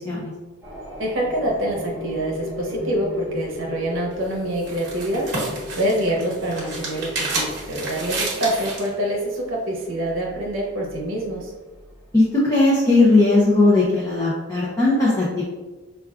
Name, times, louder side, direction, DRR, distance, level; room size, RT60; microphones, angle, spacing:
sound 1, 0.6-12.2, left 2 dB, 10° right, 0.8 m, -37 dB
voice 1, 1.0-11.5, right 1 dB, 85° right, -2 dB, 0.7 m, -26 dB
sound 2, 4.1-8.9, right 2 dB, 55° right, 1.0 m, -30 dB
voice 2, 12.1-15.4, left 2 dB, 15° left, -7 dB, 0.5 m, -18 dB
4.4 x 2.3 x 2.4 m, 1.2 s
head